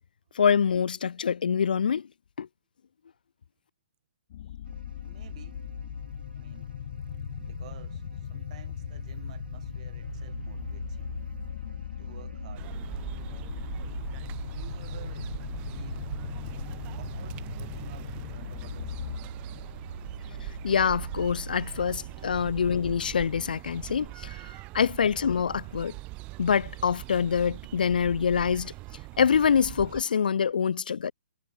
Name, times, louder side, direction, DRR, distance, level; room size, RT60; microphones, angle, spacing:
voice 1, 0.4-2.1 2.4-2.5 20.6-25.9 26.4-28.7 29.2-31.1, left 7 dB, 70° left, 0.6 m, -25 dB
sound 1, 4.3-19.2, left 11 dB, 50° left, 2.4 m, -39 dB
sound 2, 4.6-22.8, right 4 dB, 90° right, 2.3 m, -43 dB
voice 2, 5.0-5.6 6.3-6.8 7.4-11.1 12.0-12.8 14.4-16.1 17.0-19.0, right 13 dB, 45° right, 6.3 m, -53 dB
sound 3, 12.5-30.0, right 23 dB, 25° right, 0.4 m, -42 dB
hypercardioid pair, 135°, 5 cm